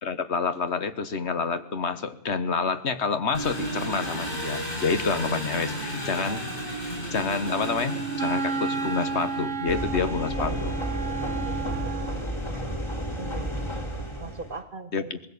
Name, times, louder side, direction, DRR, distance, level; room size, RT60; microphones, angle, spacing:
voice 1, 0.0-10.7 14.9-15.2, left 5 dB, 80° left, 11 dB, 1.6 m, -28 dB
Engine, 3.3-9.8, right 1 dB, 50° left, 8.0 m, -33 dB
Wind instrument woodwind instrument, 7.4-12.2, right 4 dB, 5° left, 1.9 m, -32 dB
sound 1, 9.7-14.6, equal, 25° left, 2.1 m, -31 dB
voice 2, 11.4-11.8 13.1-14.0 14.2-15.1, right 4 dB, 55° right, 11 dB, 1.7 m, -40 dB
20.5 x 15.5 x 8.5 m, 0.68 s
omnidirectional pair, 1.1 m